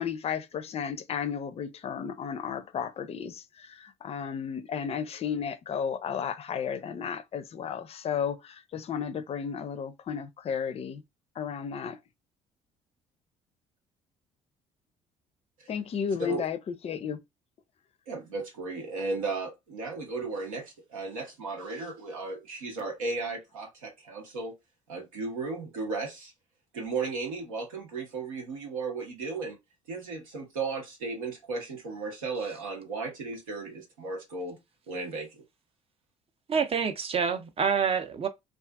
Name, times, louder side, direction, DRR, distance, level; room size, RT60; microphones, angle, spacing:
voice 1, 0.0-11.0 11.4-12.0 15.7-16.6 16.8-17.2, left 7 dB, 35° left, 0.5 m, -33 dB
voice 2, 18.1-24.5 24.9-26.3 26.7-29.6 29.9-34.6 34.9-35.4, right 3 dB, 85° right, 0.9 m, -35 dB
voice 3, 36.5-38.3, right 6 dB, 35° right, 0.6 m, -27 dB
2.5 x 2.4 x 2.3 m
hypercardioid pair, 55°, 17 cm